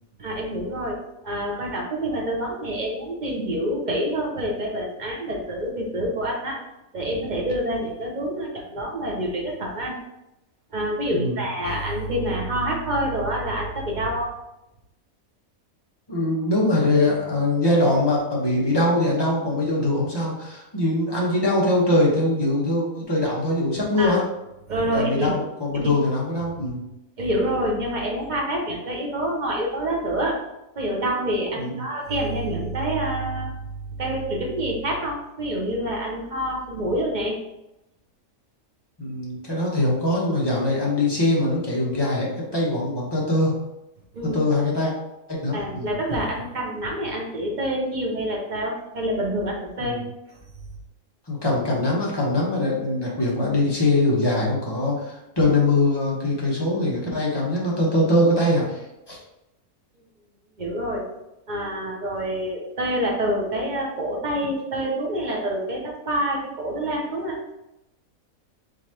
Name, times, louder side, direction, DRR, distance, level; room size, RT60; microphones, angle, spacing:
voice 1, 0.2-1.0 1.2-6.7 6.9-10.0 10.7-14.3 24.0-24.2 24.7-25.4 25.7-25.9 27.2-30.4 30.8-33.5 34.0-37.4 44.1-44.4 45.5-50.0 60.6-61.0 61.5-67.4, right 1 dB, 40° right, -1 dB, 0.8 m, -27 dB
voice 2, 16.1-24.2 24.9-26.8 31.5-31.8 39.0-43.5 44.2-44.9 45.3-45.9 49.8-50.0 51.3-59.2, left 1 dB, 20° left, -5 dB, 1.0 m, -22 dB
5.0 x 3.3 x 2.9 m, 0.91 s
omnidirectional pair, 1.5 m